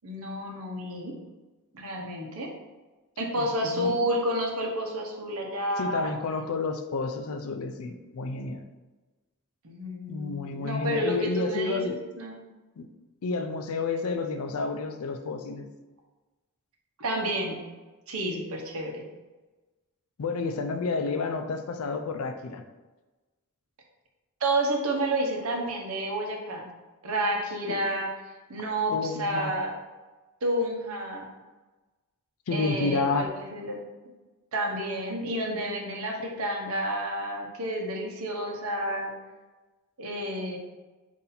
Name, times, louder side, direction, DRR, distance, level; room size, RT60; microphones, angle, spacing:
voice 1, 0.0-1.1 1.7-2.5 3.2-6.1 9.6-12.4 17.0-17.6 18.1-19.0 24.4-26.7 27.0-28.1 28.5-29.7 30.4-31.3 32.5-33.8 34.5-39.1 40.0-40.6, right 1 dB, 75° right, 1 dB, 0.8 m, -30 dB
voice 2, 3.3-4.0 5.8-8.6 10.1-12.0 12.8-12.9 13.2-15.7 20.2-22.6 27.7-27.8 28.9-29.5 32.5-33.3, left 3 dB, 80° left, 7 dB, 0.4 m, -30 dB
4.1 x 2.7 x 3.9 m, 1.2 s
head